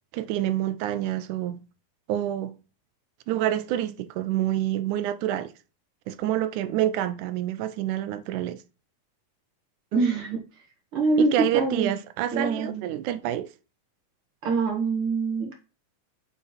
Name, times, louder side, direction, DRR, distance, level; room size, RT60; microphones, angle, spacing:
voice 1, 0.1-1.6 2.1-2.6 3.3-5.5 6.1-8.6 11.2-13.5, right 12 dB, 85° right, 2.1 m, -27 dB
voice 2, 9.9-10.4 10.9-11.9 12.3-12.8 14.4-15.5, right 3 dB, 50° right, 2.4 m, -24 dB
7.1 x 3.7 x 4.3 m
omnidirectional pair, 3.5 m